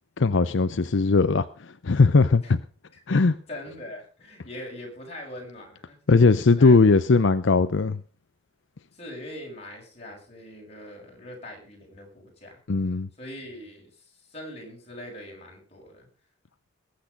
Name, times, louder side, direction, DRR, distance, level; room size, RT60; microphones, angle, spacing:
voice 1, 0.2-1.5 1.8-2.6 3.1-3.3 6.1-8.0 12.7-13.1, left 4 dB, 75° left, 0.6 m, -19 dB
voice 2, 3.5-6.0 6.3-6.9 8.9-12.6 13.2-16.1, left 1 dB, 35° left, 6.4 m, -42 dB
20.5 x 8.5 x 5.3 m
head